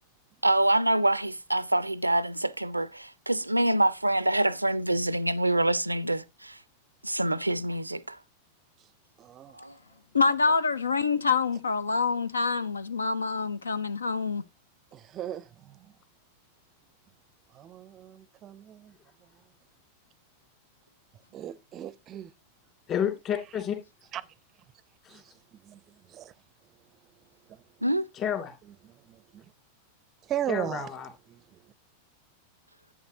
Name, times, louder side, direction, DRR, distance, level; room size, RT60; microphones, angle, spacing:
voice 1, 0.4-6.5 7.0-8.2 9.6-9.7 27.8-28.1, right 1 dB, 85° right, 0.4 m, -26 dB
voice 2, 9.2-9.5 14.9-15.8 17.5-18.9 21.3-22.3 24.1-24.2 25.1-25.2 25.7-25.8 26.1-26.3 29.1-29.4 30.3-30.9, right 11 dB, 30° right, 0.5 m, -36 dB
voice 3, 10.1-14.4, left 4 dB, 75° left, 0.5 m, -26 dB
voice 4, 22.9-23.8 25.0-25.2 28.1-28.5 30.5-31.1, left 9 dB, 35° left, 2.6 m, -30 dB
11.0 x 8.7 x 2.8 m
figure-of-eight pair, 90°, 0 cm